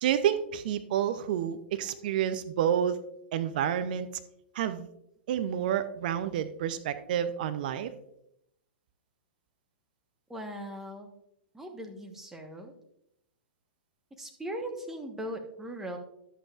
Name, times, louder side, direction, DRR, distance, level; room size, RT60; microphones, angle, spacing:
voice 1, 0.0-3.0 3.3-4.1 4.5-4.9 5.3-7.9, right 9 dB, 50° right, 11 dB, 0.6 m, -29 dB
voice 2, 10.3-11.1 11.5-12.7 14.2-16.0, right 1 dB, 5° right, 2 dB, 1.2 m, -39 dB
11.0 x 8.2 x 2.5 m, 0.78 s
figure-of-eight pair, 105°, 6 cm